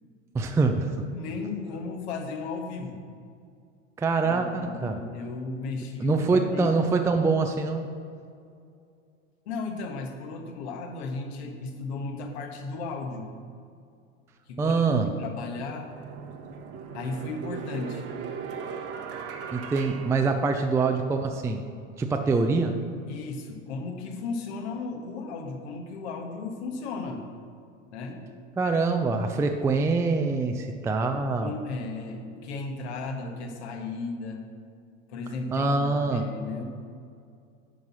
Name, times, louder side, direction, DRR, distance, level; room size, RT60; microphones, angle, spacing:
voice 1, 0.3-1.1 4.0-5.0 6.0-7.9 14.6-15.1 19.5-21.6 22.0-22.8 28.6-31.5 35.5-36.2, right 3 dB, 10° right, 5 dB, 0.4 m, -24 dB
voice 2, 1.1-3.0 4.2-6.7 9.4-13.3 14.5-15.9 16.9-18.1 20.1-20.3 23.1-27.2 27.8-28.3 31.4-34.4 35.1-36.6, left 3 dB, 65° left, 4 dB, 1.4 m, -35 dB
sound 1, 15.8-21.0, right 6 dB, 40° right, 1.0 m, -38 dB
10.0 x 4.0 x 6.0 m, 2.4 s
hypercardioid pair, 90°, 36 cm